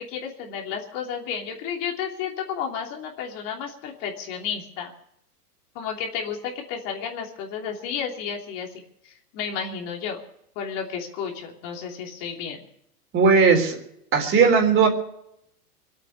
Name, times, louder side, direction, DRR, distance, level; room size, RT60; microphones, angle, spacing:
voice 1, 0.0-4.9 5.7-10.2 10.5-12.6, left 7 dB, 45° left, 1 dB, 3.1 m, -32 dB
voice 2, 13.1-13.8 14.1-14.9, right 5 dB, 25° right, 3 dB, 4.0 m, -17 dB
23.5 x 8.6 x 6.9 m, 0.76 s
hypercardioid pair, 115°, 47 cm